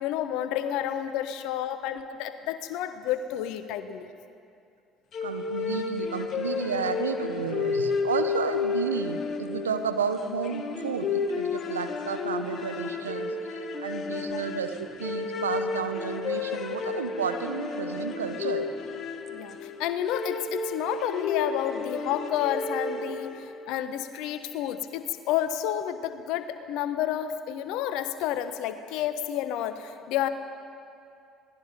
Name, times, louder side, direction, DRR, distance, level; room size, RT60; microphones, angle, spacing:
voice 1, 0.0-4.1 14.3-14.4 19.3-30.3, left 11 dB, 65° left, 10 dB, 1.1 m, -30 dB
sound 1, 5.1-23.6, left 4 dB, 50° left, 1.8 m, -32 dB
voice 2, 5.2-18.7, right 6 dB, 85° right, 8 dB, 1.1 m, -32 dB
27.0 x 19.0 x 5.3 m, 2.5 s
figure-of-eight pair, 55°, 0 cm